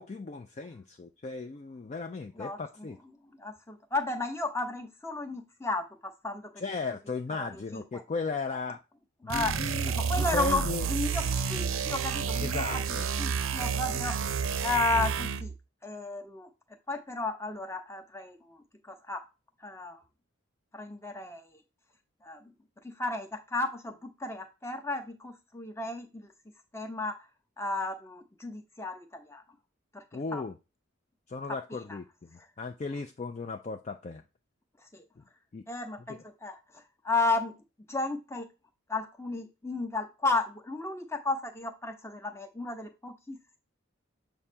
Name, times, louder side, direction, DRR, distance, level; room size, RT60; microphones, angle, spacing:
voice 1, 0.0-3.0 6.6-8.8 9.2-10.9 12.4-13.1 30.1-30.5 31.3-34.2 35.2-35.3 35.5-35.6 36.1-36.2, left 3 dB, 30° left, 0.3 m, -36 dB
voice 2, 3.4-6.4 7.4-8.0 9.2-9.5 9.9-10.6 10.9-12.6 13.2-14.1 14.6-15.5 15.8-16.5 16.9-18.6 18.9-19.2 19.6-20.0 20.7-21.4 22.2-22.4 23.0-26.3 26.7-27.2 27.6-29.4 29.9-30.0 30.3-30.4 31.9-32.0 34.9-35.0 35.7-36.6 37.0-37.5 37.9-38.5 38.9-43.6, left 3 dB, 10° left, 0.8 m, -33 dB
sound 1, 9.3-15.5, right 6 dB, 70° right, 0.5 m, -30 dB
7.1 x 2.6 x 5.5 m
head